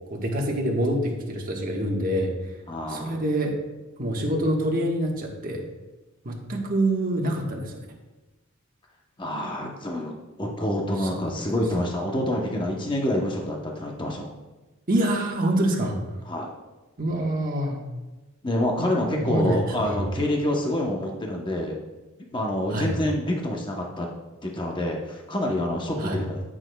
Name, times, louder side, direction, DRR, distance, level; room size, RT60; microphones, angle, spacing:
voice 1, 0.1-2.3 2.9-3.5 4.0-5.6 6.2-7.7 11.0-11.3 14.9-16.0 17.0-17.8 19.2-20.0 22.7-22.9 25.9-26.2, right 1 dB, 40° right, 0 dB, 1.3 m, -26 dB
voice 2, 2.7-3.3 9.2-10.1 10.4-14.3 16.3-16.5 18.4-21.7 22.3-24.1 24.4-26.4, left 1 dB, 20° left, 0 dB, 0.8 m, -27 dB
14.0 x 6.2 x 2.3 m, 1.1 s
head